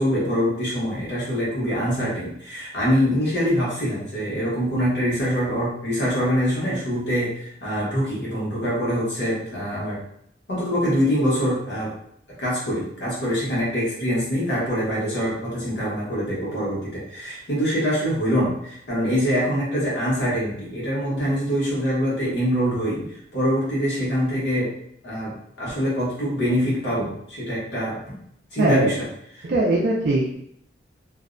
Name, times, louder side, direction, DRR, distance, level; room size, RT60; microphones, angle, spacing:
voice 1, 0.0-10.0 10.5-11.9 12.4-24.7 25.0-25.3 25.6-28.2 28.5-29.0 29.4-29.5, equal, 75° left, -7 dB, 1.1 m, -24 dB
voice 2, 28.6-28.9 29.4-30.3, right 1 dB, 55° right, -4 dB, 0.3 m, -20 dB
2.6 x 2.1 x 2.5 m, 0.72 s
head